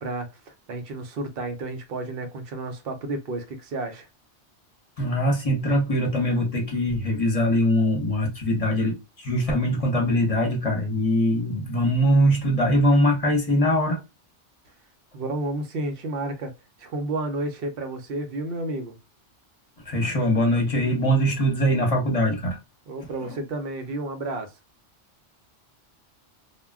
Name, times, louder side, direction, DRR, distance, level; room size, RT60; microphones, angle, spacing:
voice 1, 0.0-4.1 15.1-16.5 16.8-19.0 22.9-24.5, right 2 dB, 60° right, 0.8 m, -31 dB
voice 2, 5.0-14.0 19.8-22.6 23.2-23.3, equal, 35° left, 0.8 m, -22 dB
2.2 x 2.1 x 3.5 m
omnidirectional pair, 1.2 m